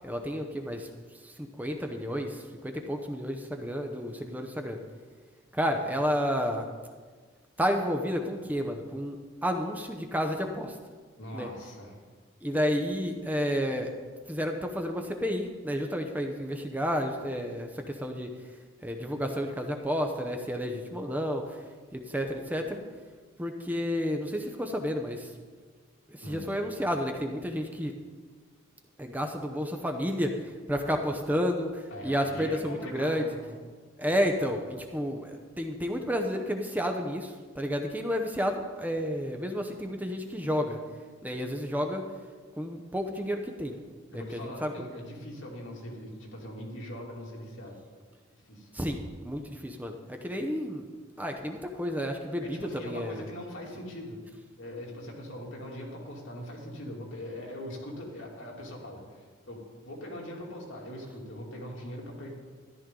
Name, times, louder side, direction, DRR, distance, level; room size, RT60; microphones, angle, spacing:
voice 1, 0.0-0.9 1.2-4.8 5.5-6.7 7.6-10.8 11.3-11.5 12.4-14.0 14.3-18.3 18.8-21.4 21.9-22.8 23.4-25.3 26.1-27.9 29.0-30.4 30.7-33.2 34.0-40.8 41.2-42.0 42.6-43.8 44.1-44.7 48.7-50.9 51.2-53.2, equal, 10° right, 4 dB, 0.7 m, -31 dB
voice 2, 11.2-11.9 26.2-26.5 31.9-33.5 44.1-47.8 48.3-48.7 52.4-54.2 54.6-62.3, left 1 dB, 70° left, -2 dB, 2.8 m, -41 dB
13.5 x 11.5 x 3.8 m, 1.5 s
head